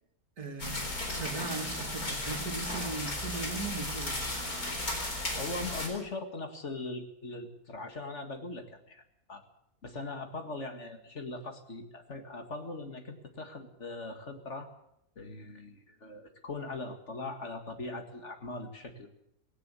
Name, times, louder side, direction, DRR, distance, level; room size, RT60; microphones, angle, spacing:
voice 1, 0.4-4.3, right 4 dB, 70° right, 5 dB, 2.6 m, -39 dB
sound 1, 0.6-5.9, left 1 dB, 65° left, 4.9 m, -35 dB
voice 2, 5.4-9.0 9.3-9.4 9.8-14.7 15.2-19.1, left 2 dB, 45° left, 6 dB, 2.3 m, -40 dB
18.5 x 17.5 x 8.2 m, 0.78 s
omnidirectional pair, 1.6 m